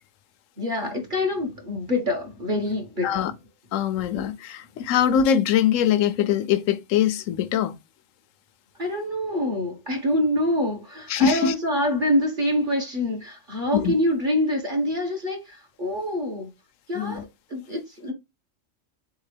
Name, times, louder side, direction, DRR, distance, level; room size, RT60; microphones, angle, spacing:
voice 1, 0.6-3.3 8.8-16.5 16.9-18.1, left 1 dB, 40° right, 1.2 m, -26 dB
voice 2, 3.7-7.7 11.1-11.5 13.7-13.9 16.9-17.2, left 8 dB, 85° left, 1.0 m, -22 dB
3.8 x 3.6 x 3.2 m
omnidirectional pair, 1.3 m